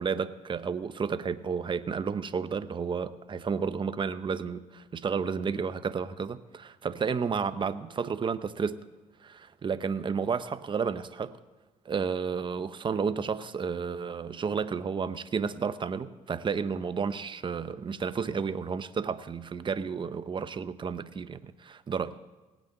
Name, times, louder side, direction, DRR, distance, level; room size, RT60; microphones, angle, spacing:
voice 1, 0.0-8.8 9.2-11.4 11.8-22.3, right 6 dB, 35° right, 0.8 m, -32 dB
18.0 x 6.2 x 8.9 m
supercardioid pair, 75°, 14 cm